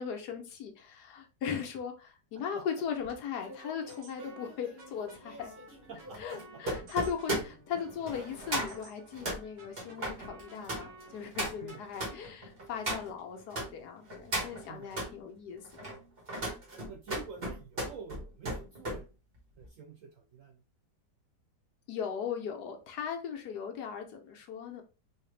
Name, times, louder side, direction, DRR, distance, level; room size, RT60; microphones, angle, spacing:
voice 1, 0.0-5.5 6.2-16.0 21.9-24.8, left 7 dB, 70° left, 1.3 m, -38 dB
sound 1, 3.0-13.7 14.1-15.1 15.6-19.0 19.4-19.7, right 1 dB, 35° right, 1.5 m, -38 dB
sound 2, 3.3-12.2, right 2 dB, 50° right, 1.3 m, -54 dB
voice 2, 5.9-6.4 11.6-11.8 14.7-14.9 16.9-19.1 19.6-20.6, right 6 dB, 70° right, 0.7 m, -48 dB
3.9 x 2.8 x 3.2 m
omnidirectional pair, 1.8 m